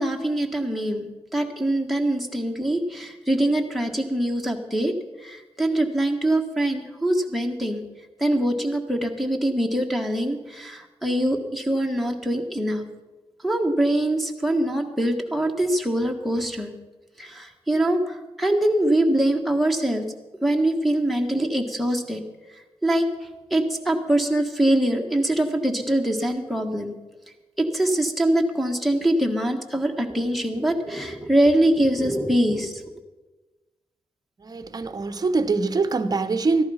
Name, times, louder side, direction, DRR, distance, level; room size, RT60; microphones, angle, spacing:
voice 1, 0.0-4.9 5.2-7.8 8.2-12.8 13.4-16.7 17.2-20.0 20.4-22.2 22.8-23.1 23.5-26.9 27.6-32.9, right 1 dB, ahead, 1.5 m, -23 dB
voice 2, 34.4-36.6, right 3 dB, 35° right, 0.9 m, -23 dB
14.0 x 11.5 x 5.7 m
wide cardioid pair, 115°, 11 cm